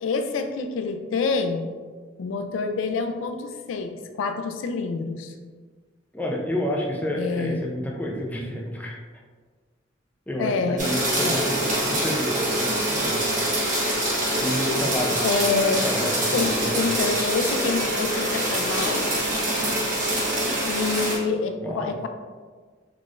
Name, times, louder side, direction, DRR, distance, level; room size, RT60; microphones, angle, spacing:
voice 1, 0.0-1.7 2.2-5.3 7.1-7.6 10.4-11.3 15.2-15.8 16.3-19.3 20.6-22.1, left 4 dB, 75° left, 7 dB, 0.3 m, -27 dB
voice 2, 6.1-9.0 10.3-13.7 14.4-15.2 15.8-16.9 21.5-21.9, left 1 dB, 10° left, -2 dB, 0.4 m, -30 dB
sound 1, 10.8-21.2, right 1 dB, 40° right, 1.2 m, -25 dB
4.0 x 3.1 x 2.4 m, 1.5 s
head